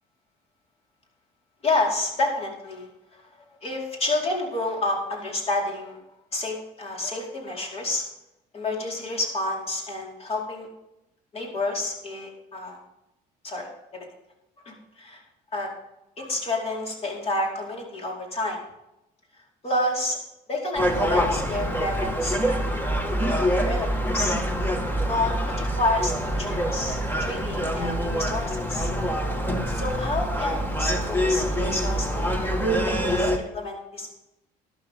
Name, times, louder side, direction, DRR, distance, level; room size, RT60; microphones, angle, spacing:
voice 1, 1.6-6.0 6.3-8.1 8.5-10.7 11.3-12.8 13.4-13.7 13.9-14.1 14.6-15.2 15.5-15.7 16.2-18.6 19.6-20.2 20.5-22.7 23.0-23.9 24.1-24.4 25.1-28.9 29.7-32.5 32.9-34.1, left 2 dB, 35° left, -1 dB, 4.7 m, -29 dB
Gull seagull, 20.7-33.4, equal, 10° left, 1.9 m, -25 dB
13.0 x 12.0 x 3.8 m, 0.88 s
cardioid pair, 110°, 17 cm